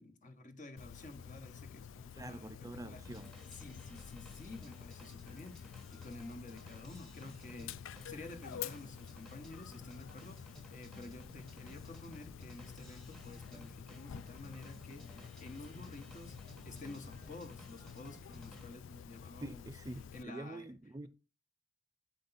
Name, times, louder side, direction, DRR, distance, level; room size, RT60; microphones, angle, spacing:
voice 1, 0.0-3.0 3.4-19.6 20.1-20.7, left 2 dB, 40° left, 1.2 m, -51 dB
Dog, 0.8-20.2, left 7 dB, 80° left, 0.4 m, -49 dB
voice 2, 2.1-3.3 19.4-21.1, right 2 dB, 15° right, 0.4 m, -46 dB
sound 1, 2.9-19.1, right 1 dB, ahead, 1.1 m, -57 dB
7.9 x 5.2 x 4.0 m
head